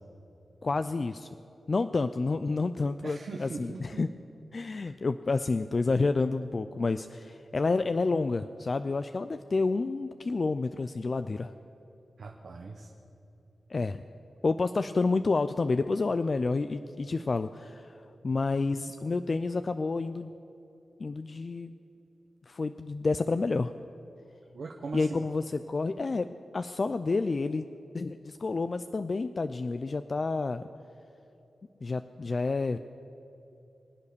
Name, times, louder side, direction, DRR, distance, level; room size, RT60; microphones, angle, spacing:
voice 1, 0.6-1.3 1.7-4.1 4.5-11.5 13.7-14.0 14.4-18.0 18.2-20.3 21.0-21.7 22.5-23.7 24.9-26.3 26.5-27.7 27.9-30.6 31.8-32.8, left 3 dB, 45° left, 10 dB, 0.4 m, -29 dB
voice 2, 3.0-4.0 12.2-12.9 24.5-25.2, right 4 dB, 70° right, 1 dB, 1.2 m, -40 dB
24.0 x 8.3 x 6.8 m, 3.0 s
cardioid pair, 70°, 0 cm